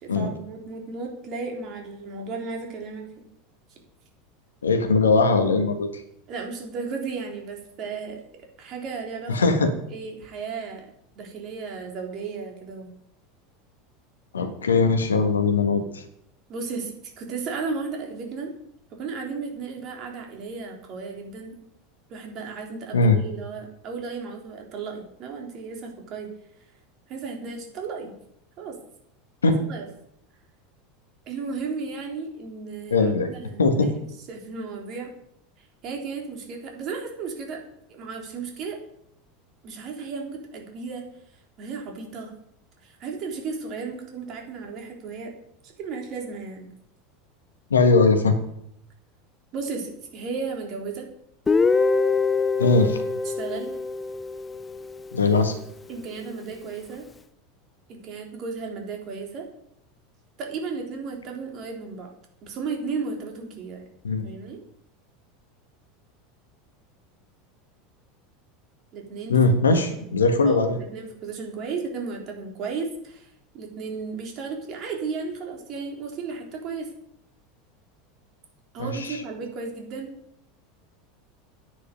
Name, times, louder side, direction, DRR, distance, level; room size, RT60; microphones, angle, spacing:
voice 1, 0.0-3.2 6.3-8.2 8.6-9.6 9.9-10.9 11.2-12.9 16.5-18.5 18.9-21.6 22.1-26.3 27.1-28.1 28.6-28.8 29.5-29.8 31.3-33.9 34.3-35.1 35.8-37.6 37.9-38.8 39.6-41.1 41.6-42.3 42.8-45.3 45.6-46.7 49.5-51.1 53.2-53.8 55.9-57.1 57.9-59.5 60.4-62.1 62.4-63.8 64.2-64.6 68.9-69.4 69.9-70.0 70.4-70.6 70.9-73.3 73.5-76.9 78.7-80.1, right 4 dB, 45° right, 1 dB, 3.6 m, -34 dB
voice 2, 4.6-5.9 9.3-9.7 14.3-16.0 22.9-23.2 29.4-29.6 32.9-33.3 33.6-33.9 47.7-48.3 52.6-53.0 55.1-55.5 64.0-64.3 69.3-70.8 78.8-79.2, left 3 dB, 80° left, 7 dB, 1.7 m, -20 dB
Guitar, 51.5-55.3, left 4 dB, 20° left, 0.6 m, -24 dB
10.0 x 9.9 x 5.4 m, 0.76 s
figure-of-eight pair, 80°, 0 cm